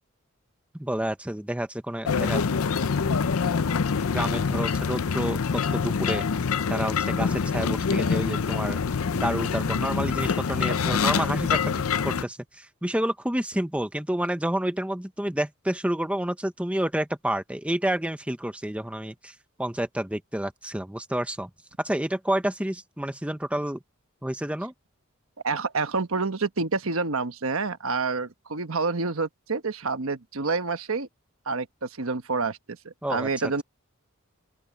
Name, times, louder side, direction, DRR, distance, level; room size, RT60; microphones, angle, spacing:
voice 1, 0.8-2.4 3.2-3.3 4.1-6.2 6.7-8.8 9.1-21.5 21.8-23.8 24.2-24.7 33.0-33.3, right 1 dB, 5° right, 1.0 m, -29 dB
sound 1, 2.1-12.2, left 5 dB, 80° left, 0.6 m, -25 dB
voice 2, 25.4-31.1 31.5-33.6, right 4 dB, 70° right, 1.2 m, -28 dB
open air
head